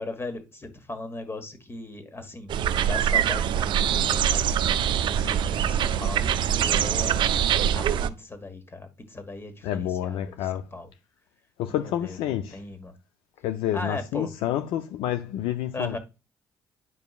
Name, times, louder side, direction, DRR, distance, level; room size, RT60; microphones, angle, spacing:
voice 1, 0.0-2.5 2.7-7.2 7.7-10.9 11.7-12.9 13.7-14.3 15.7-16.0, left 2 dB, 25° left, 1.5 m, -38 dB
sound 1, 2.5-8.1, right 9 dB, 60° right, 0.4 m, -23 dB
voice 2, 9.6-10.7 11.6-12.6 13.4-16.0, left 11 dB, 75° left, 0.5 m, -29 dB
9.4 x 5.2 x 2.4 m
hypercardioid pair, 50°, 9 cm